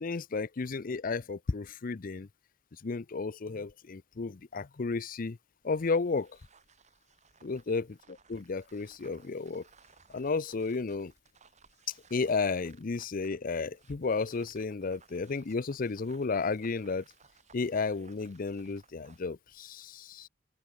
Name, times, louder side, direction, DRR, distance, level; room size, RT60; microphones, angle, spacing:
voice 1, 0.0-2.3 2.7-5.4 5.6-6.4 7.4-9.7 10.1-11.1 12.1-17.0 17.5-20.3, left 4 dB, 50° left, 0.6 m, -33 dB
sound 1, 5.6-19.3, right 5 dB, 40° right, 2.9 m, -62 dB
open air
head